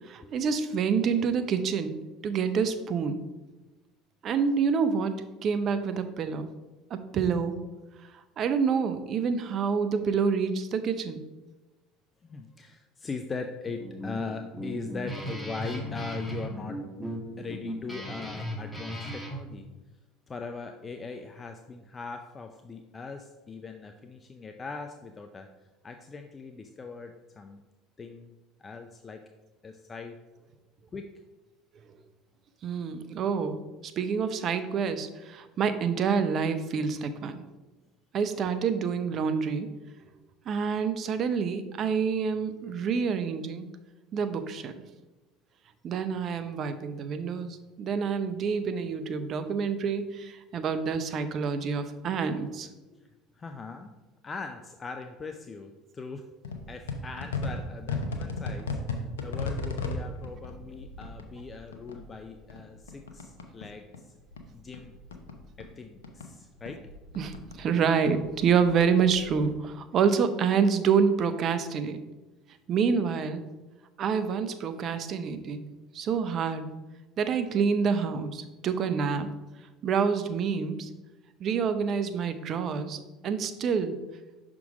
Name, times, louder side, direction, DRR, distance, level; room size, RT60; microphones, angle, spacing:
voice 1, 0.1-2.0 2.2-3.2 4.2-5.2 5.4-6.5 6.9-7.6 8.4-11.2 32.6-37.4 38.1-39.7 40.5-43.7 44.1-44.8 45.8-52.7 67.2-72.0 72.7-73.4 74.0-75.6 75.9-76.7 77.2-79.3 79.8-80.9 81.4-83.0 83.2-84.0, right 6 dB, 50° right, 10 dB, 0.6 m, -27 dB
voice 2, 12.2-19.7 20.3-25.5 25.8-27.6 28.0-28.3 28.6-29.2 29.6-30.2 30.9-31.2 52.9-53.9 54.2-56.3 56.7-64.1 64.5-64.9 65.6-66.8 72.9-73.1 75.7-75.8, left 4 dB, 30° left, 6 dB, 0.4 m, -40 dB
Guitar, 13.6-19.4, equal, 5° left, 1.4 m, -37 dB
sound 1, 56.4-63.7 63.9-66.3 66.6-69.5, left 3 dB, 85° left, 0.7 m, -36 dB
5.9 x 3.7 x 4.9 m, 1.1 s
hypercardioid pair, 70°, 0 cm